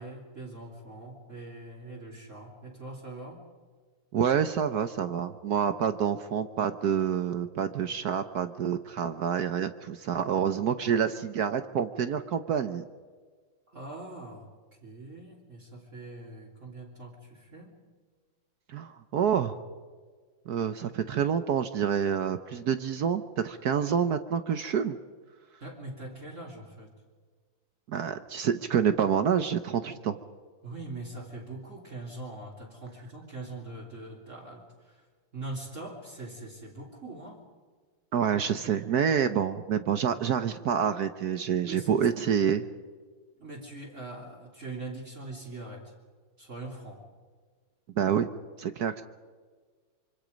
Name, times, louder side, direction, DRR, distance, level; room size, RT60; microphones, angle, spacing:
voice 1, 0.0-3.4 13.7-14.5 14.8-17.7 25.6-26.9 30.6-35.1 35.3-37.4 41.6-42.1 43.4-45.9 46.4-47.1, right 2 dB, 35° right, -3 dB, 3.5 m, -42 dB
voice 2, 4.1-12.8 18.7-19.6 20.5-25.0 27.9-30.2 38.1-42.7 48.0-48.3 48.6-49.0, right 8 dB, 60° right, 10 dB, 1.2 m, -27 dB
25.5 x 24.5 x 5.2 m, 1.5 s
omnidirectional pair, 2.2 m